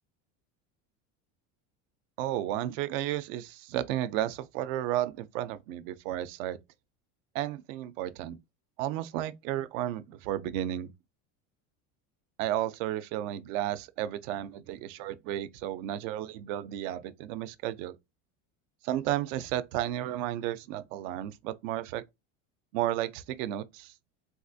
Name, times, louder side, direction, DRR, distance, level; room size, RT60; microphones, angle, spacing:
voice 1, 2.2-6.6 7.3-8.4 8.8-10.9 12.4-17.9 18.8-22.0 22.7-23.9, right 13 dB, 75° right, 0.6 m, -33 dB
4.0 x 2.4 x 2.6 m
cardioid pair, 170°, 38 cm